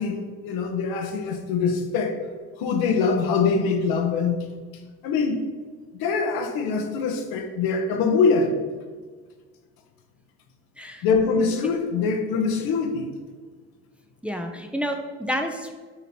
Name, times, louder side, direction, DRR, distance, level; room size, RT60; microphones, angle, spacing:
voice 1, 0.0-2.2 2.6-4.4 5.0-5.4 6.0-8.6 11.0-13.1, left 5 dB, 65° left, 4 dB, 1.2 m, -23 dB
voice 2, 14.2-15.8, equal, 5° right, 4 dB, 0.8 m, -29 dB
9.0 x 4.1 x 4.4 m, 1.5 s
hypercardioid pair, 60°, 39 cm